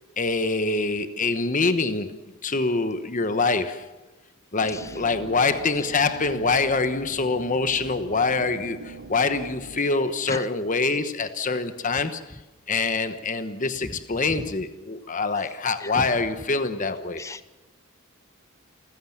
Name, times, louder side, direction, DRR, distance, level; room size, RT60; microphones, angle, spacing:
voice 1, 0.2-2.1 2.4-3.9 4.5-12.2 12.7-17.2, left 3 dB, 40° left, 1.1 m, -25 dB
sound 1, 4.6-9.8, right 3 dB, 75° right, 1.5 m, -42 dB
voice 2, 17.2-17.5, left 2 dB, 15° left, 0.7 m, -34 dB
28.0 x 15.5 x 7.3 m
head